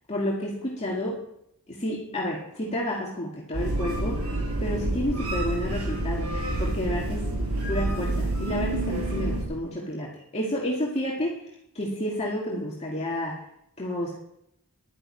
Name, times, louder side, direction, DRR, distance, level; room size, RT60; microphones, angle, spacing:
voice 1, 0.1-1.2 1.7-4.3 4.6-6.3 6.6-7.3 7.7-11.4 11.7-13.3 13.8-14.2, left 1 dB, 30° left, -4 dB, 2.3 m, -30 dB
sound 1, 3.5-9.4, right 2 dB, 80° right, 5.1 m, -28 dB
11.0 x 7.7 x 9.9 m, 0.77 s
head